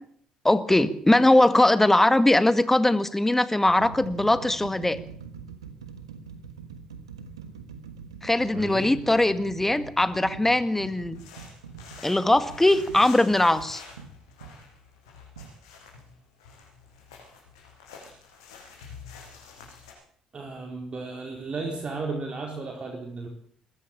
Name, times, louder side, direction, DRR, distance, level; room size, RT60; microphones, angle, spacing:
voice 1, 0.4-5.0 8.2-11.2 12.0-13.8, left 1 dB, 10° left, 12 dB, 1.9 m, -21 dB
sound 1, 1.3-1.6 2.5-2.6 3.3-14.6 15.4-15.5, right 6 dB, 90° right, 1.4 m, -43 dB
voice 2, 8.5-9.0 20.3-23.3, right 3 dB, 40° right, 2 dB, 4.4 m, -34 dB
sound 2, 11.1-19.9, left 5 dB, 80° left, 6.5 m, -48 dB
22.0 x 14.0 x 8.7 m, 0.63 s
hypercardioid pair, 50°, 3 cm